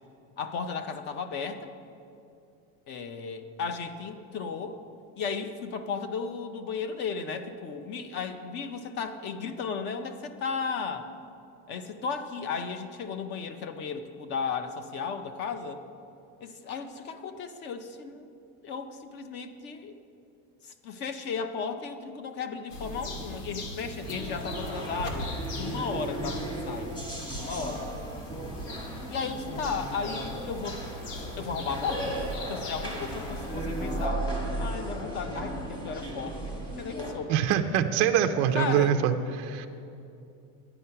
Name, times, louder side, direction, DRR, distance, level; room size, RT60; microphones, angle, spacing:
voice 1, 0.4-1.7 2.9-4.8 5.2-11.1 11.7-15.8 16.4-18.3 18.6-19.9 20.6-25.3 25.6-27.0 27.4-27.9 29.1-30.8 31.4-32.2 32.5-34.3 34.6-37.5 38.5-39.0, left 5 dB, 30° left, 9 dB, 0.5 m, -35 dB
sound 1, 22.7-34.1, left 1 dB, 75° left, 1.8 m, -41 dB
sound 2, 24.0-37.1, right 1 dB, 10° left, 1.3 m, -35 dB
voice 2, 37.3-39.7, right 9 dB, 40° right, 5 dB, 0.4 m, -24 dB
11.0 x 9.7 x 5.6 m, 2.6 s
cardioid pair, 180°, 39 cm